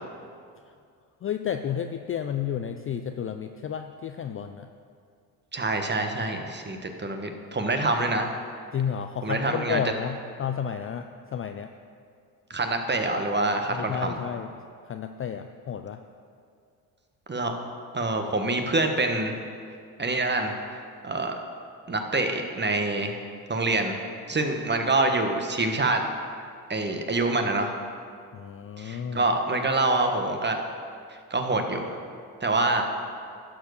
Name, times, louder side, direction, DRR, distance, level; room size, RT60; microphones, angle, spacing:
voice 1, 1.2-4.7 7.8-7.9 8.7-11.7 13.7-14.5 14.9-16.0 28.3-29.2, left 8 dB, 30° left, 7 dB, 0.4 m, -32 dB
voice 2, 5.5-8.3 9.2-9.8 12.5-14.1 17.3-17.6 17.9-19.3 20.0-20.5 21.0-21.3 21.9-23.2 23.5-24.0 24.3-26.0 26.7-27.7 28.8-30.6 31.3-31.9 32.4-32.8, right 2 dB, 20° right, 5 dB, 1.2 m, -26 dB
11.5 x 4.7 x 6.4 m, 2.3 s
hypercardioid pair, 60°, 47 cm